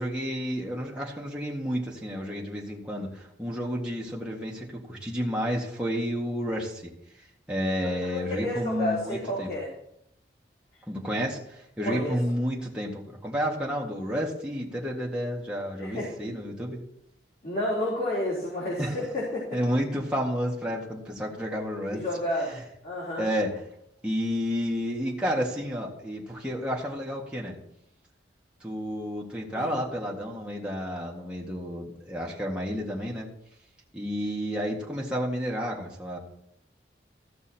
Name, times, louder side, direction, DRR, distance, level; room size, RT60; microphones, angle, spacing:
voice 1, 0.0-6.8 7.5-9.5 10.9-16.8 18.8-18.9 19.5-22.0 23.2-23.5 24.0-27.6 28.6-33.3 33.9-36.2, equal, 5° right, -3 dB, 1.7 m, -31 dB
voice 2, 7.8-9.7 11.8-12.1 15.8-16.1 17.4-19.5 21.9-23.3 29.5-29.8, left 1 dB, 55° left, -9 dB, 3.9 m, -31 dB
15.5 x 6.2 x 4.4 m, 0.77 s
head